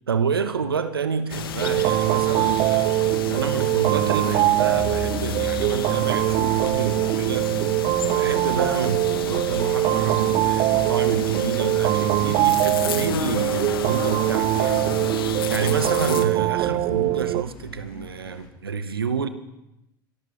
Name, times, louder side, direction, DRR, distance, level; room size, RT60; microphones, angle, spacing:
voice 1, 0.1-2.9 3.3-7.5 8.0-19.3, right 6 dB, 90° right, 1.0 m, -28 dB
sound 1, 1.3-16.3, left 7 dB, 80° left, 1.2 m, -32 dB
sound 2, 1.6-17.4, right 17 dB, 45° right, 0.5 m, -22 dB
Car, 4.7-18.5, left 5 dB, 50° left, 3.1 m, -42 dB
25.5 x 13.0 x 3.2 m
hypercardioid pair, 85°, 12 cm